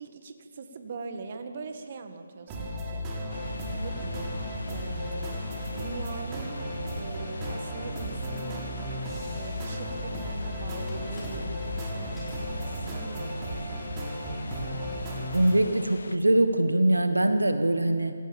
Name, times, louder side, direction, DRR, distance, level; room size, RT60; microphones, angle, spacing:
voice 1, 0.0-3.1 3.7-4.4 4.7-5.4 5.7-6.7 7.0-8.8 9.3-13.7, right 4 dB, 45° right, 7 dB, 1.8 m, -41 dB
sound 1, 2.5-15.6, equal, 20° right, 3.9 m, -34 dB
sound 2, 3.3-16.2, left 3 dB, 70° left, 1.5 m, -42 dB
sound 3, 5.3-12.6, left 2 dB, 15° left, 5.0 m, -50 dB
voice 2, 15.3-18.1, right 1 dB, 90° right, 9 dB, 1.6 m, -23 dB
26.0 x 16.5 x 7.2 m, 2.2 s
figure-of-eight pair, 150°, 0 cm